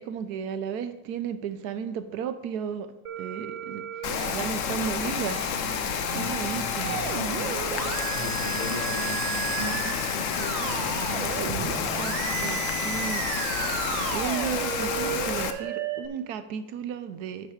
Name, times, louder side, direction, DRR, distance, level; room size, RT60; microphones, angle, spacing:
voice 1, 0.0-7.0 11.4-13.3 14.1-17.5, right 7 dB, 70° right, 1.0 m, -34 dB
Musical instrument, 3.1-16.1, right 9 dB, 90° right, 1.4 m, -33 dB
Rain, 4.0-15.5, left 8 dB, 75° left, 0.7 m, -30 dB
voice 2, 8.1-11.3, right 2 dB, 20° right, 1.1 m, -37 dB
8.9 x 6.1 x 4.9 m
omnidirectional pair, 2.0 m